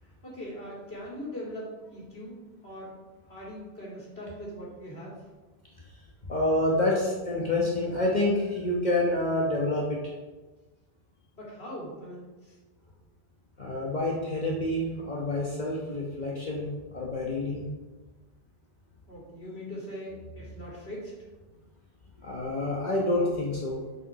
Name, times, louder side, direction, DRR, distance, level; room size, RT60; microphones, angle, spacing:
voice 1, 0.2-2.9 3.3-5.2 11.3-12.6 19.1-21.1, equal, 85° left, -5 dB, 2.8 m, -41 dB
voice 2, 6.3-10.0 13.6-17.7 22.2-23.8, left 1 dB, 45° left, -3 dB, 1.2 m, -28 dB
7.0 x 5.4 x 5.6 m, 1.2 s
omnidirectional pair, 1.0 m